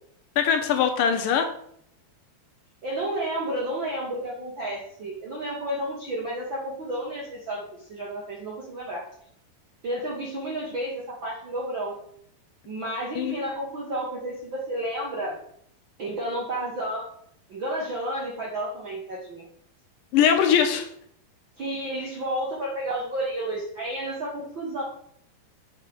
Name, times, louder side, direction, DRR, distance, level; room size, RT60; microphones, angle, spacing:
voice 1, 0.4-1.5 13.2-13.4 20.1-20.9, left 8 dB, 75° left, 6 dB, 2.3 m, -21 dB
voice 2, 2.8-9.0 9.8-12.0 12.7-15.4 16.0-17.1 17.5-19.4 21.6-24.8, right 1 dB, 65° right, -3 dB, 1.1 m, -31 dB
5.9 x 5.0 x 6.0 m, 0.66 s
omnidirectional pair, 4.3 m